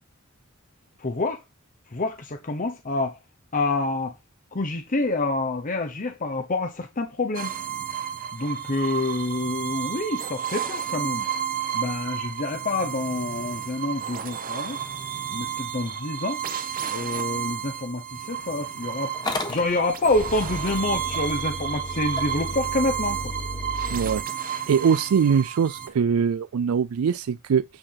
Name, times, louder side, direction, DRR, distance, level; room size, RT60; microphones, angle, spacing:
voice 1, 1.0-1.4 1.9-3.2 3.5-4.1 4.5-7.5 8.3-11.3 11.7-14.8 15.3-16.4 16.9-23.3, left 2 dB, 40° left, 0.9 m, -27 dB
sound 1, 7.3-25.9, right 9 dB, 40° right, 1.0 m, -31 dB
Motor vehicle (road) / Engine starting, 19.1-24.2, left 1 dB, 20° left, 1.3 m, -34 dB
voice 2, 23.9-24.2 24.7-27.6, right 7 dB, 90° right, 0.4 m, -22 dB
9.0 x 4.2 x 5.7 m
head